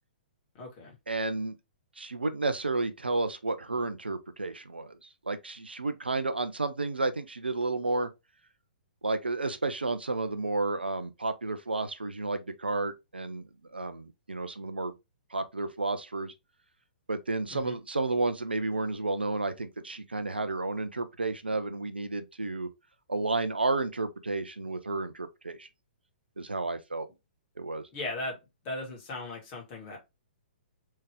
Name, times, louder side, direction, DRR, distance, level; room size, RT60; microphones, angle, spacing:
voice 1, 0.6-0.9 17.5-17.7 27.9-28.4 28.6-30.0, left 2 dB, 30° left, 1.9 m, -37 dB
voice 2, 1.1-1.6 2.0-8.1 9.0-13.5 13.7-14.9 15.3-16.3 17.1-22.7 23.1-25.7 26.4-27.1 27.6-27.9, right 3 dB, 80° right, 0.6 m, -31 dB
3.6 x 3.2 x 3.4 m
figure-of-eight pair, 115°, 6 cm